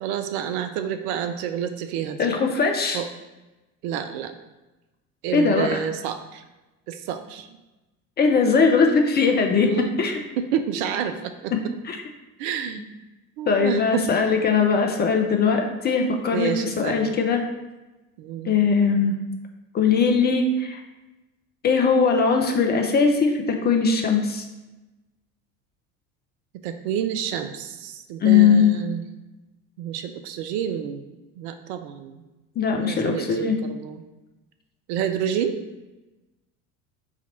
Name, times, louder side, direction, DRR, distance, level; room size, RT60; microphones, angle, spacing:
voice 1, 0.0-2.3 2.9-3.1 3.8-4.3 5.2-6.4 6.9-7.6 9.5-9.9 10.4-11.5 12.4-12.9 13.4-14.1 16.3-17.1 18.2-18.5 26.6-29.1 29.8-31.0 31.4-32.2 32.8-34.0 34.9-35.6, right 9 dB, 50° right, 8 dB, 0.4 m, -29 dB
voice 2, 2.2-3.0 5.3-5.8 8.2-9.7 10.0-10.2 11.8-12.0 13.5-17.4 18.4-19.2 19.7-20.8 21.6-24.4 28.2-28.7 32.6-33.6, left 5 dB, 25° left, 3 dB, 0.4 m, -20 dB
3.9 x 2.9 x 4.3 m, 1.1 s
figure-of-eight pair, 65°, 45 cm